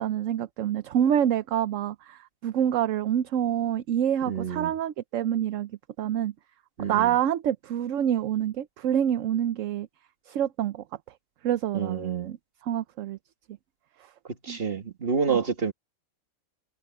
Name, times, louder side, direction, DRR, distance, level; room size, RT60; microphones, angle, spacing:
voice 1, 0.0-5.7 6.0-6.3 6.8-9.9 10.3-10.8 11.4-12.4 12.6-13.2 14.5-14.6 15.3-15.4, right 10 dB, 65° right, 1.0 m, -27 dB
voice 2, 4.3-4.7 6.8-7.2 11.7-12.3 14.4-15.7, right 6 dB, 40° right, 2.0 m, -28 dB
omnidirectional pair, 1.5 m